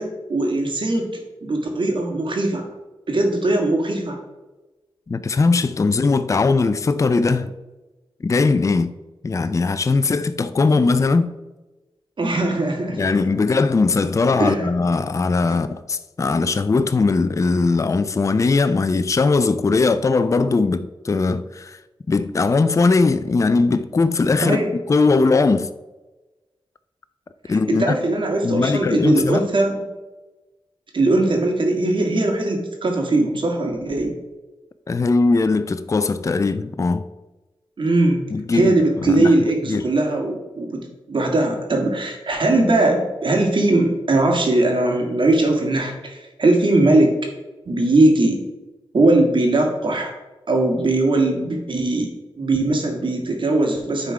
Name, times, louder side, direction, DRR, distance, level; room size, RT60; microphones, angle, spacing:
voice 1, 0.0-2.7 3.1-4.2 12.2-13.0 14.4-14.7 24.4-24.7 27.5-29.8 30.9-34.2 37.8-38.2 38.5-47.2 47.7-48.4 48.9-50.1 50.5-52.1 52.4-54.1, right 2 dB, 60° right, 1.7 m, -20 dB
voice 2, 5.1-7.5 8.2-8.9 9.2-11.3 12.9-21.8 22.1-24.6 24.9-25.7 27.5-28.0 28.4-29.5 34.9-37.1 38.3-39.3 39.7-39.8, left 3 dB, 35° left, 0.4 m, -19 dB
9.6 x 3.7 x 4.7 m
cardioid pair, 70°, 10 cm